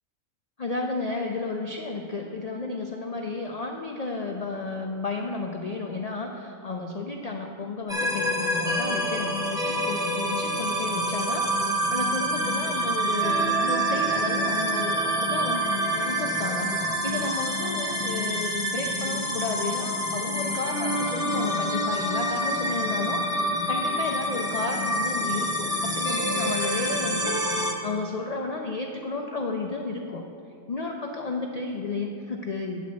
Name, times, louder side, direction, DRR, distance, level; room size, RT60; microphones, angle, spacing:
voice 1, 0.6-30.2 30.7-32.8, left 3 dB, 70° left, 2 dB, 0.3 m, -32 dB
sound 1, 7.9-27.7, right 1 dB, 5° right, 0.4 m, -27 dB
9.6 x 4.2 x 7.4 m, 2.4 s
omnidirectional pair, 1.4 m